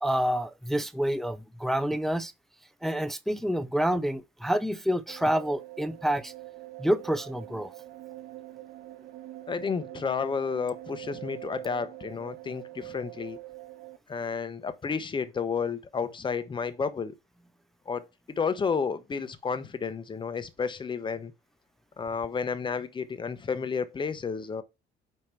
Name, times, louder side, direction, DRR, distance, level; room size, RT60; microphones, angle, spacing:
voice 1, 0.0-2.3 2.8-6.3 6.8-7.7, equal, ahead, 0.4 m, -28 dB
sound 1, 5.1-14.0, right 17 dB, 70° right, 1.2 m, -44 dB
voice 2, 9.5-13.4 14.1-17.1 17.9-18.1 18.4-21.3 22.0-24.6, left 5 dB, 30° left, 0.9 m, -31 dB
8.8 x 3.0 x 4.6 m
cardioid pair, 110°, 17 cm